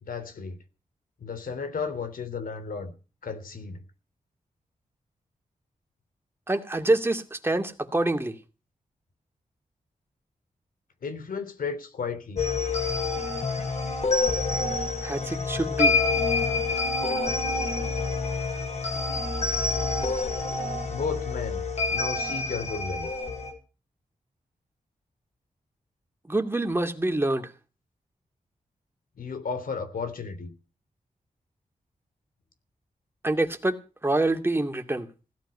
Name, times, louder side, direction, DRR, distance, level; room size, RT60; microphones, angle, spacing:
voice 1, 0.0-0.6 1.2-2.9 3.2-3.8 11.0-12.5 16.6-17.0 17.4-17.9 20.9-21.6 21.9-23.1 29.2-30.5, left 5 dB, 85° left, 3.3 m, -34 dB
voice 2, 6.5-8.4 15.0-16.0 26.3-27.5 33.2-35.1, right 2 dB, 15° right, 2.4 m, -26 dB
sound 1, 12.4-23.5, left 3 dB, 50° left, 7.1 m, -27 dB
17.0 x 12.5 x 5.6 m
wide cardioid pair, 120°, 14 cm